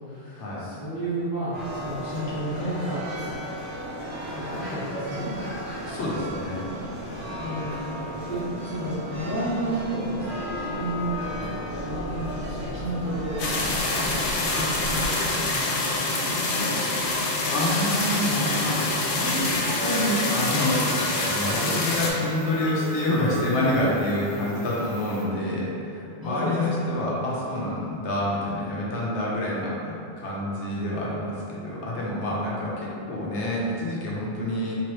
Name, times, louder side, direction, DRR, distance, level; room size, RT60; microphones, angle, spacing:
voice 1, 0.0-3.1 4.3-5.3 7.1-8.0 8.3-15.9 21.6-21.9 26.2-26.9, right 1 dB, 20° left, -11 dB, 0.9 m, -32 dB
sound 1, 1.5-15.1, equal, 70° right, 1.5 m, -34 dB
voice 2, 5.9-6.7 17.5-19.4 19.8-34.8, left 1 dB, 85° left, -5 dB, 1.1 m, -27 dB
sound 2, 13.4-22.1, left 2 dB, 60° left, 0.7 m, -26 dB
sound 3, 18.6-25.2, right 1 dB, 50° right, 0.3 m, -36 dB
3.5 x 3.0 x 3.1 m, 2.6 s
omnidirectional pair, 1.1 m